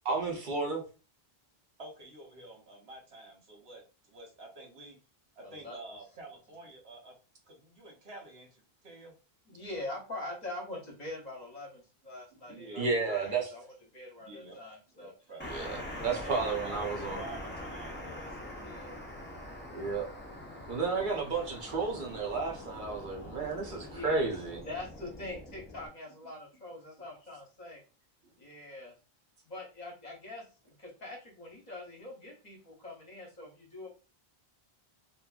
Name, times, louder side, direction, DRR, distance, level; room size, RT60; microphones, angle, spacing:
voice 1, 0.0-0.8 12.8-13.5 15.5-17.2 19.7-20.1 20.7-24.6, right 4 dB, 55° right, 1 dB, 0.8 m, -32 dB
voice 2, 1.8-5.0 5.4-7.1 7.5-9.1 12.4-12.9 14.2-14.6 14.9-18.4 28.2-28.4, right 2 dB, 80° right, -1 dB, 1.2 m, -49 dB
voice 3, 5.4-6.0 9.5-15.1 15.9-16.2 18.6-19.1 23.8-24.2 24.6-27.8 28.4-28.9 29.5-33.9, left 2 dB, 45° left, -1 dB, 0.9 m, -44 dB
sound 1, 15.4-25.9, left 1 dB, 15° left, 0.4 m, -43 dB
2.7 x 2.5 x 2.3 m, 0.33 s
omnidirectional pair, 1.0 m